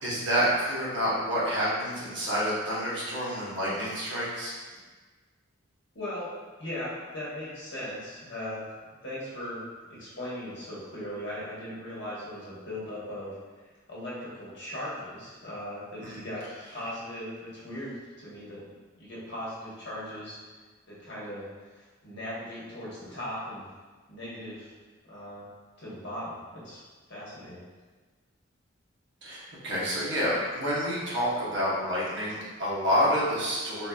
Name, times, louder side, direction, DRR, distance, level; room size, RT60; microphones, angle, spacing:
voice 1, 0.0-4.5 16.0-16.2 29.2-33.9, equal, 60° right, -6 dB, 0.9 m, -28 dB
voice 2, 5.9-6.3 6.6-8.7 9.0-9.6 9.9-13.4 13.9-18.6 19.0-20.4 20.9-21.5 21.7-23.6 24.1-24.7 25.1-25.4 25.8-26.8 27.1-27.6, left 1 dB, 60° left, -8 dB, 1.0 m, -38 dB
3.8 x 2.5 x 2.3 m, 1.4 s
head